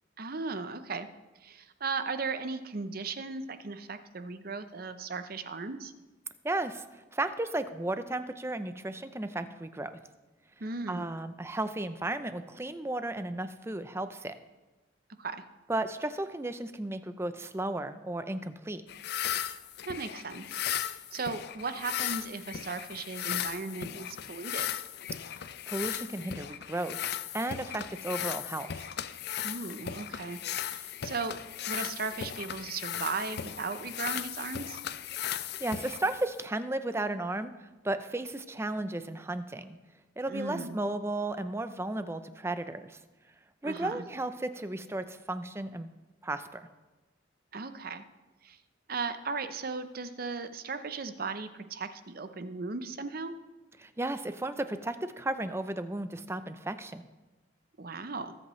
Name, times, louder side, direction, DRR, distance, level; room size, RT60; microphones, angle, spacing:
voice 1, 0.2-1.1 1.4-5.9 10.6-11.1 15.2-15.4 19.9-20.6 20.9-24.8 29.4-31.4 31.7-34.8 40.3-40.8 43.6-44.0 47.5-48.0 48.4-48.6 48.9-53.3 57.8-58.3, right 4 dB, 50° right, 10 dB, 0.7 m, -37 dB
voice 2, 6.4-10.0 10.9-14.3 15.7-18.8 25.2-25.3 25.7-27.0 27.3-28.8 35.3-37.5 37.8-39.8 40.2-43.0 43.6-45.9 46.2-46.6 53.8-57.1, right 2 dB, 15° right, 11 dB, 0.5 m, -34 dB
sound 1, 18.9-36.5, left 10 dB, 55° left, 0.4 m, -37 dB
21.0 x 8.2 x 3.2 m, 1.2 s
head